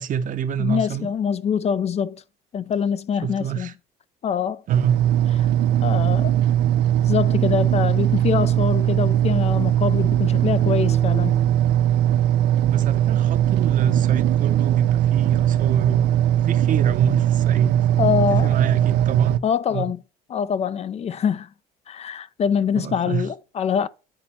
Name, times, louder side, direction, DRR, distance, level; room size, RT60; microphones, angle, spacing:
voice 1, 0.0-1.1 3.2-3.7 4.7-5.0 12.6-16.2 16.4-17.8 18.3-19.4 19.7-19.9 22.8-23.3, right 7 dB, 50° right, 0.7 m, -27 dB
voice 2, 0.6-2.2 2.5-3.7 4.2-4.6 5.3-5.5 5.8-6.4 7.1-11.4 18.0-18.6 19.4-20.0 20.3-21.5 21.9-23.9, left 7 dB, 40° left, 0.4 m, -24 dB
sound 1, 4.7-19.4, right 11 dB, 80° right, 0.5 m, -19 dB
8.9 x 4.1 x 4.3 m
cardioid pair, 110°, 17 cm